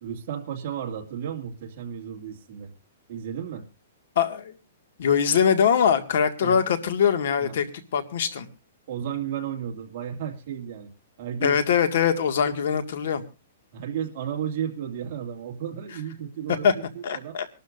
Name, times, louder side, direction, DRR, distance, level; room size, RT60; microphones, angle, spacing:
voice 1, 0.0-2.7 3.1-3.7 6.4-6.6 7.4-7.5 8.9-10.9 11.2-11.6 13.7-17.4, right 9 dB, 40° right, 2 dB, 2.3 m, -33 dB
voice 2, 4.2-4.5 5.0-7.7 7.9-8.5 11.4-13.2 16.6-16.7 17.0-17.5, left 7 dB, 60° left, 9 dB, 1.9 m, -22 dB
25.5 x 12.5 x 2.6 m, 0.29 s
hypercardioid pair, 170°, 0 cm